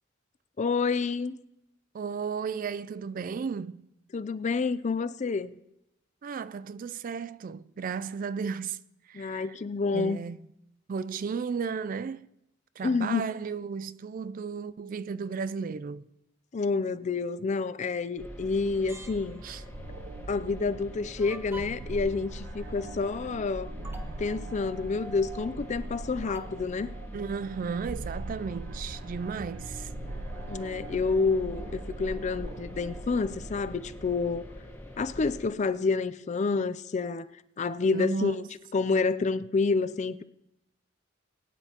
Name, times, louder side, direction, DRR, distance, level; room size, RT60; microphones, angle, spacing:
voice 1, 0.6-1.4 4.1-5.6 9.1-10.2 12.8-13.3 16.5-19.4 20.3-23.7 24.2-26.9 30.5-34.4 35.0-37.3 37.6-38.5 38.7-40.2, left 4 dB, 35° left, 0.4 m, -28 dB
voice 2, 1.9-3.9 6.2-8.8 9.1-9.5 9.9-10.4 10.9-12.3 12.8-16.1 19.4-19.6 27.1-29.9 37.9-38.4, right 5 dB, 45° right, 0.3 m, -34 dB
sound 1, 18.2-35.5, equal, 10° left, 1.5 m, -45 dB
sound 2, 18.7-19.7 21.2-22.0 23.3-23.4 23.8-24.2 26.3-26.6, right 1 dB, 10° right, 0.8 m, -47 dB
sound 3, 19.5-34.1, right 2 dB, 80° right, 0.8 m, -41 dB
21.5 x 9.9 x 2.9 m
head